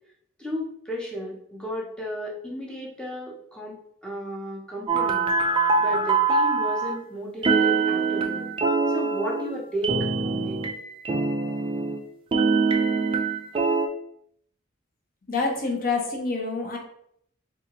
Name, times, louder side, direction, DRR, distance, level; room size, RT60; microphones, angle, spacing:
voice 1, 0.4-3.7 4.0-5.3 5.8-8.5 8.9-10.6, equal, 5° left, -3 dB, 0.7 m, -33 dB
sound 1, 4.9-7.0 7.4-12.0 12.3-13.9, right 4 dB, 25° right, 0.3 m, -24 dB
voice 2, 15.3-16.8, left 3 dB, 45° left, 1 dB, 0.8 m, -27 dB
4.0 x 2.4 x 2.9 m, 0.68 s
head